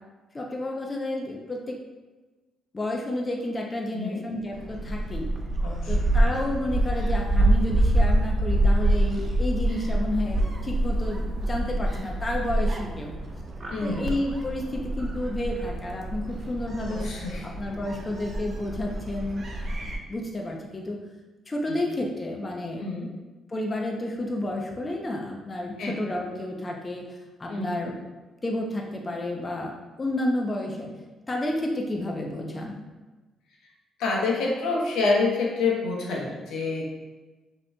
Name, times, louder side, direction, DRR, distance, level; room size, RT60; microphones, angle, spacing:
voice 1, 0.3-1.8 2.7-5.3 5.9-13.1 13.8-17.1 17.4-19.4 19.8-21.0 21.5-22.8 23.5-27.0 27.4-28.0 28.4-29.7 30.0-31.0 31.3-32.8, left 1 dB, 25° left, 0 dB, 0.5 m, -31 dB
Gull seagull, 4.5-20.0, right 1 dB, 45° right, 0.6 m, -26 dB
voice 2, 5.6-5.9 13.7-14.1 16.9-17.5 21.7-21.8 22.8-23.1 25.8-25.9 27.5-27.8 34.0-36.9, left 3 dB, 85° left, -2 dB, 0.9 m, -27 dB
5.2 x 3.0 x 2.2 m, 1.2 s
cardioid pair, 90°, 0 cm